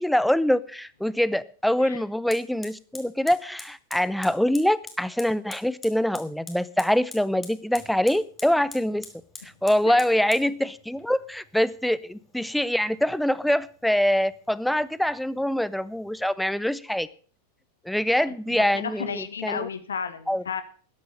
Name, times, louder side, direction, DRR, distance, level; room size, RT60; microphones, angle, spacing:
voice 1, 0.0-9.1 9.6-17.1 17.9-19.7 20.3-20.4, left 1 dB, ahead, 18 dB, 0.7 m, -24 dB
Fire, 2.3-16.3, left 4 dB, 15° left, 2.8 m, -47 dB
voice 2, 18.7-20.6, left 6 dB, 70° left, 12 dB, 1.1 m, -33 dB
13.0 x 10.0 x 6.6 m, 0.43 s
figure-of-eight pair, 90°, 0 cm